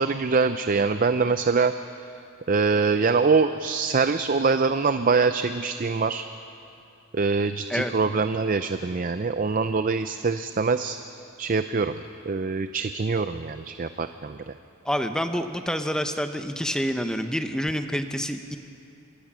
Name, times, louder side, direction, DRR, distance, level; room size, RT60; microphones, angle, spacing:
voice 1, 0.0-2.0 2.5-6.3 7.1-11.0 11.4-12.0 12.3-14.5, right 4 dB, 40° right, 10 dB, 0.5 m, -24 dB
voice 2, 14.8-18.6, equal, 5° left, 7 dB, 0.8 m, -27 dB
25.5 x 20.0 x 6.2 m, 2.7 s
head